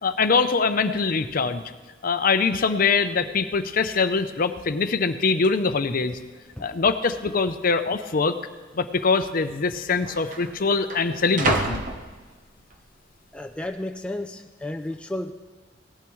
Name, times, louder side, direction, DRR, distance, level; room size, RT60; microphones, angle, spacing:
voice 1, 0.0-1.6 2.0-6.2 6.6-8.4 8.7-11.8, left 4 dB, 45° left, 10 dB, 0.6 m, -23 dB
sound 1, 4.3-4.7 5.4-5.5 6.3-6.8 7.1-7.2 8.1-8.2 9.2-9.3 9.5-12.8 13.3-13.7, right 2 dB, 45° right, 0.9 m, -31 dB
voice 2, 13.3-15.3, left 1 dB, 5° left, 5 dB, 0.4 m, -32 dB
17.5 x 12.0 x 3.1 m, 1.4 s
head